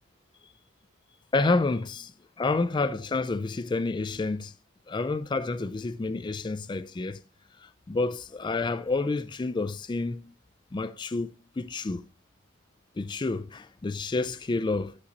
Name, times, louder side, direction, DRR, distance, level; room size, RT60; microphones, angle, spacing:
voice 1, 1.3-2.1 2.4-4.5 4.9-7.2 7.6-10.3 10.7-12.0 13.0-15.0, left 3 dB, 20° left, 0.3 m, -29 dB
9.8 x 4.1 x 5.0 m
head